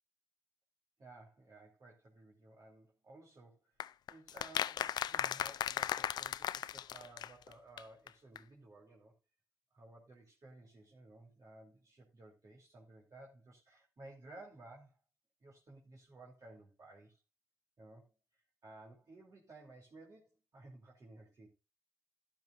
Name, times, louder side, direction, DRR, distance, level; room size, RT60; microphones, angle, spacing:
voice 1, 1.0-9.1 9.7-15.0 15.4-17.2 17.8-21.5, right 2 dB, 50° right, -2 dB, 3.0 m, -57 dB
sound 1, 3.8-7.5 7.8-7.9 8.1-8.2 8.4-8.5, left 10 dB, 75° left, 0.5 m, -37 dB
12.5 x 12.0 x 2.5 m, 0.27 s
supercardioid pair, 60°, 7 cm